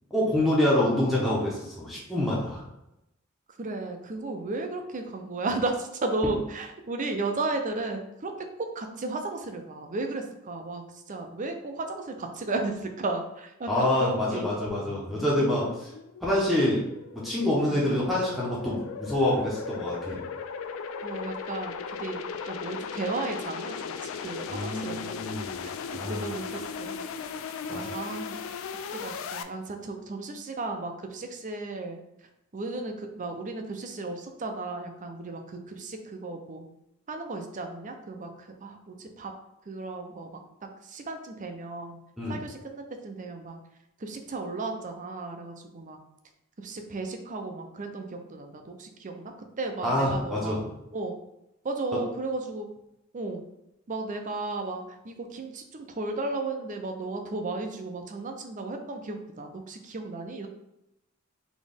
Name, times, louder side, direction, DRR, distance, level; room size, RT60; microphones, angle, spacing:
voice 1, 0.1-2.6 13.7-15.9 16.2-16.9 17.1-20.2 24.5-25.6 25.9-26.2 27.7-28.0 42.2-42.4 49.8-50.6, left 1 dB, ahead, -7 dB, 0.9 m, -26 dB
voice 2, 3.6-14.5 17.7-17.9 21.0-25.3 25.6-25.7 26.1-27.0 27.7-28.4 28.9-32.0 32.5-36.7 37.1-39.3 39.7-40.4 40.8-42.0 42.3-43.6 44.0-46.0 46.6-50.6 50.9-51.1 51.6-52.7 53.1-53.4 53.9-60.5, right 3 dB, 35° right, 5 dB, 0.5 m, -34 dB
sound 1, 14.7-29.4, left 6 dB, 65° left, 0.3 m, -37 dB
4.1 x 3.0 x 3.5 m, 0.87 s
head